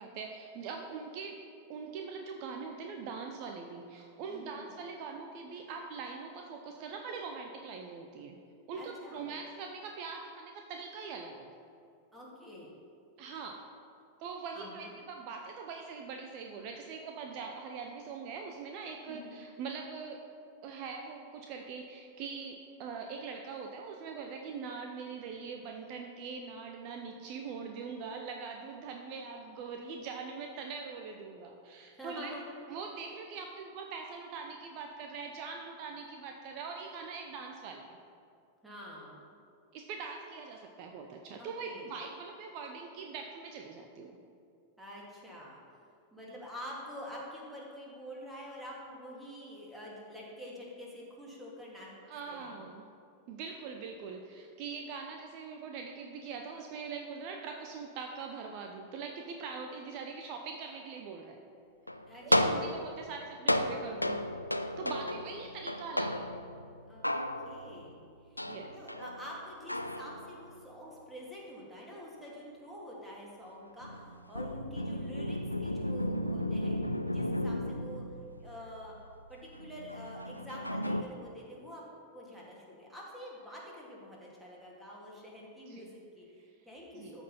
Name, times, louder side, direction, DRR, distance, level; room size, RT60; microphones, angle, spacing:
voice 1, 0.0-1.4 1.7-8.3 8.7-11.5 13.2-13.6 14.2-20.2 20.6-32.3 32.7-38.0 39.7-44.2 52.1-52.8 53.3-61.4 62.2-64.3 64.8-66.3 68.5-68.8 85.7-85.9 86.9-87.2, right 5 dB, 45° right, 3 dB, 0.7 m, -42 dB
voice 2, 4.3-4.7 8.8-9.3 12.1-12.7 14.5-14.9 19.1-19.4 31.9-32.5 38.6-39.2 41.4-41.9 44.8-45.6 46.1-51.9 52.3-52.6 62.0-62.7 65.1-65.5 66.9-76.8 77.1-78.0 78.4-78.9 79.3-81.8 82.1-87.2, equal, 5° right, -4 dB, 2.5 m, -47 dB
sound 1, 61.9-67.9 68.4-70.6 73.8-81.0, left 1 dB, 85° left, 0.4 m, -34 dB
13.5 x 4.5 x 5.6 m, 2.4 s
figure-of-eight pair, 90°, 0 cm